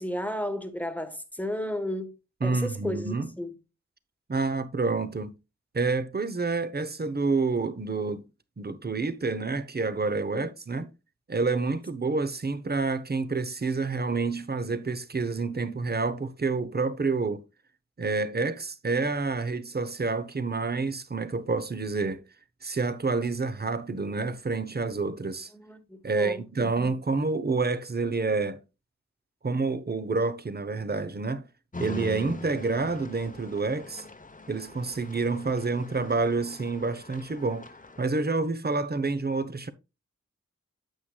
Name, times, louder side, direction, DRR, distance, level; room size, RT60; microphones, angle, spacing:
voice 1, 0.0-2.1 2.4-3.5 10.3-10.5 25.5-27.0, left 1 dB, 5° left, 1.3 m, -34 dB
voice 2, 2.4-3.3 4.3-5.3 5.7-8.3 8.6-10.9 11.3-17.4 18.0-22.2 22.6-25.5 26.0-28.6 29.4-31.5 31.8-34.0 34.5-37.7 38.0-39.7, right 3 dB, 35° right, 0.9 m, -28 dB
sound 1, 31.7-38.1, left 2 dB, 25° left, 0.9 m, -43 dB
9.1 x 8.1 x 2.3 m
wide cardioid pair, 95°, 29 cm